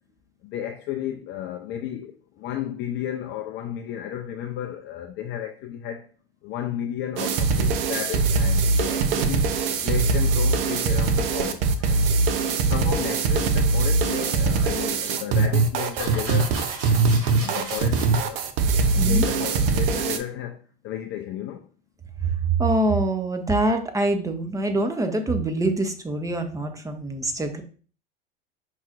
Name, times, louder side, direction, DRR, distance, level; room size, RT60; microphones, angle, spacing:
voice 1, 0.4-2.1 2.4-6.1 6.4-9.5 9.8-12.1 12.7-16.5 17.4-18.4 19.0-20.6 20.8-21.6, left 10 dB, 40° left, 0.4 m, -33 dB
sound 1, 7.2-20.2, right 4 dB, 65° right, 0.7 m, -22 dB
sound 2, 14.3-14.4 15.5-15.6 15.9-18.1, right 3 dB, 45° right, 1.4 m, -36 dB
voice 2, 19.0-19.3 22.2-22.3 22.6-27.6, right 2 dB, 10° right, 0.8 m, -24 dB
5.6 x 3.0 x 2.5 m
hypercardioid pair, 80°, 30 cm